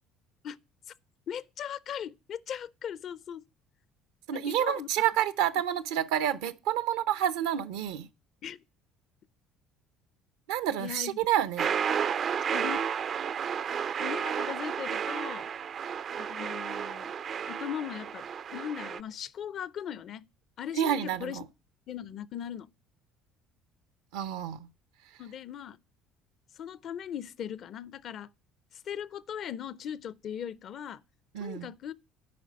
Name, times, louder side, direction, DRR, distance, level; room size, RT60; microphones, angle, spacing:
voice 1, 1.3-3.4 4.3-4.9 8.4-8.6 10.8-11.2 12.5-12.9 14.0-15.5 16.2-17.1 17.5-20.3 20.6-21.4 21.9-22.7 25.2-25.8 26.5-28.3 28.7-31.0 31.4-31.9, left 9 dB, 55° left, 0.5 m, -39 dB
voice 2, 4.3-8.1 10.5-11.7 20.7-21.5 24.1-24.7 31.3-31.7, right 10 dB, 80° right, 0.7 m, -29 dB
sound 1, 11.6-19.0, right 7 dB, 50° right, 0.4 m, -32 dB
8.6 x 5.0 x 7.6 m
hypercardioid pair, 70°, 0 cm